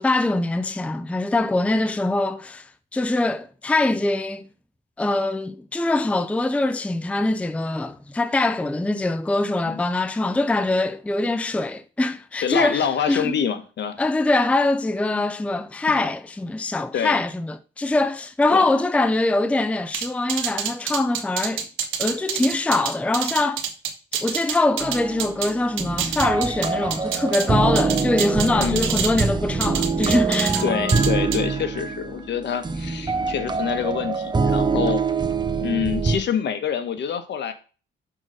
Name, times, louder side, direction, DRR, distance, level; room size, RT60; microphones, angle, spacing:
voice 1, 0.0-4.5 5.0-13.3 14.0-21.7 22.0-23.6 24.2-30.6, left 2 dB, 5° left, 0.5 m, -23 dB
voice 2, 12.4-14.0 15.1-15.3 15.9-16.0 16.9-17.2 18.5-18.7 28.5-28.8 30.6-35.0 35.6-37.5, left 8 dB, 60° left, 1.2 m, -26 dB
sound 1, 19.9-25.5 25.8-27.5 27.8-29.3 29.6-30.6 30.9-31.4, right 8 dB, 85° right, 1.2 m, -27 dB
sound 2, 24.6-34.2, left 4 dB, 25° left, 4.0 m, -46 dB
sound 3, 24.8-36.2, right 4 dB, 20° right, 0.8 m, -24 dB
6.2 x 4.0 x 6.3 m
cardioid pair, 90°, 20 cm